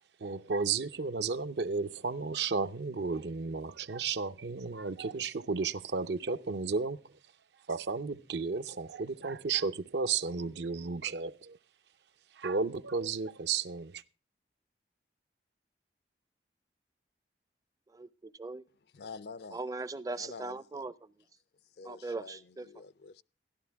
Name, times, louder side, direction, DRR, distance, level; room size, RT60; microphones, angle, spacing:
voice 1, 0.2-7.1 7.7-11.6 12.3-14.0, right 4 dB, 70° right, 0.6 m, -33 dB
voice 2, 17.9-18.7 19.5-21.1 21.8-22.7, right 3 dB, 20° right, 0.4 m, -40 dB
voice 3, 18.9-19.6 20.1-20.8 21.8-23.2, left 4 dB, 65° left, 0.5 m, -47 dB
13.0 x 12.0 x 3.4 m
head